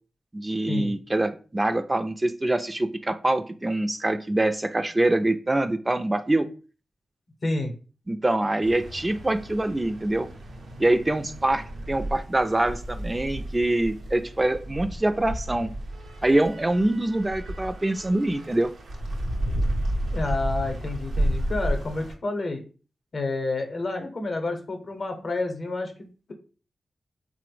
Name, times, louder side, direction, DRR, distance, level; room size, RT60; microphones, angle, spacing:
voice 1, 0.3-6.5 8.1-10.3 10.8-15.7 16.2-18.7, right 1 dB, 25° right, 8 dB, 0.3 m, -24 dB
voice 2, 7.4-7.7 20.1-22.6 23.1-26.3, left 2 dB, 60° left, 5 dB, 0.7 m, -29 dB
sound 1, 8.6-22.1, right 1 dB, 85° right, 0.6 m, -32 dB
3.2 x 2.0 x 3.1 m, 0.36 s
cardioid pair, 45°, 0 cm